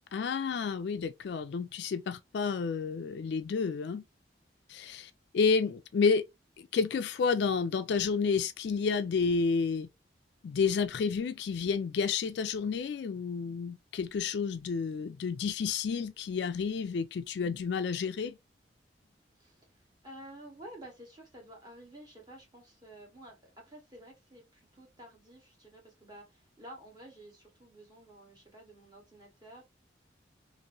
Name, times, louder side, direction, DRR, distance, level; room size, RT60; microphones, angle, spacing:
voice 1, 0.1-4.0 4.7-6.2 6.6-9.9 10.4-18.4, left 5 dB, 65° left, 0.3 m, -30 dB
voice 2, 19.4-29.6, right 1 dB, 20° right, 1.3 m, -51 dB
2.9 x 2.6 x 2.6 m
head